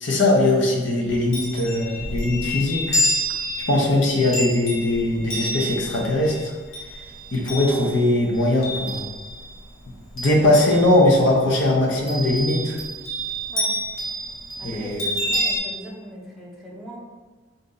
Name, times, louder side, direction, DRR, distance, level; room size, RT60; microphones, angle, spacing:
voice 1, 0.0-3.0 3.7-6.5 7.3-9.0 10.2-12.8 14.6-15.1, left 1 dB, 60° left, -1 dB, 0.7 m, -20 dB
Chime, 1.1-9.6 9.9-11.3 12.1-15.6, equal, 80° left, 1.3 m, -29 dB
voice 2, 14.6-17.0, right 1 dB, ahead, -6 dB, 0.7 m, -39 dB
4.3 x 2.6 x 3.8 m, 1.4 s
head